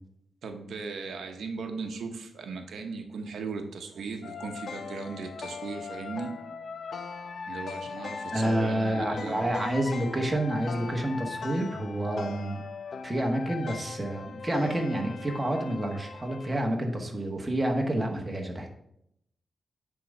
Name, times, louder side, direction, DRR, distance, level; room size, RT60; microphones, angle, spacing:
voice 1, 0.4-6.3 7.5-9.6, right 4 dB, 90° right, 5 dB, 0.8 m, -37 dB
sound 1, 4.2-16.6, left 5 dB, 65° left, 0.5 m, -39 dB
voice 2, 8.3-12.6 13.0-18.7, right 1 dB, 20° right, 2 dB, 1.3 m, -29 dB
8.7 x 3.7 x 5.4 m, 0.76 s
wide cardioid pair, 100°, 0 cm